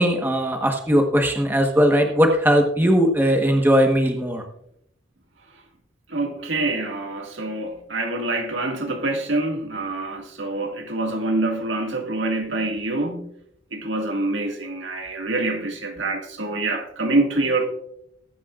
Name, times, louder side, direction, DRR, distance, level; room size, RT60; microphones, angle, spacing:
voice 1, 0.0-4.4, equal, 10° right, 1.2 m, -19 dB
voice 2, 6.1-13.3 13.7-17.7, right 2 dB, 70° right, 1.9 m, -25 dB
20.0 x 9.2 x 2.5 m
head